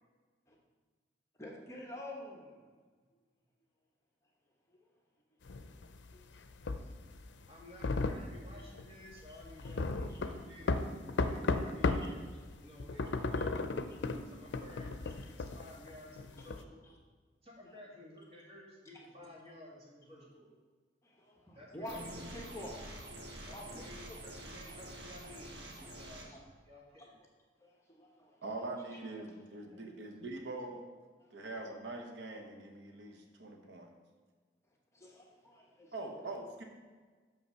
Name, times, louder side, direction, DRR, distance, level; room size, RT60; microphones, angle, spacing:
voice 1, 1.4-2.7 4.7-4.8 6.3-6.4 6.8-6.9 9.2-9.7 10.1-10.2 13.4-13.5 13.9-14.0 15.4-15.6 16.4-16.5 16.8-16.9 17.6-17.7 19.1-19.3 21.0-22.7 23.5-23.9 26.0-26.1 27.0-27.1 27.6-28.4 28.9-29.0 31.2-31.6 34.9-36.1, left 1 dB, 15° left, -1 dB, 1.0 m, -49 dB
sound 1, 5.5-12.2 12.5-16.6, left 3 dB, 80° left, 0.5 m, -35 dB
voice 2, 7.5-10.8 11.1-13.7 14.2-14.9 15.3-16.9 17.4-20.5 21.5-22.1 23.4-26.4 26.6-27.2 28.9-29.3 29.7-29.9, left 1 dB, 35° right, -5 dB, 2.2 m, -54 dB
sound 2, 21.9-26.3, right 1 dB, 65° right, 1.3 m, -47 dB
voice 3, 21.9-22.3 28.4-30.8 31.3-33.9 35.9-36.6, right 2 dB, 85° right, 2 dB, 0.9 m, -43 dB
6.5 x 5.6 x 5.6 m, 1.4 s
head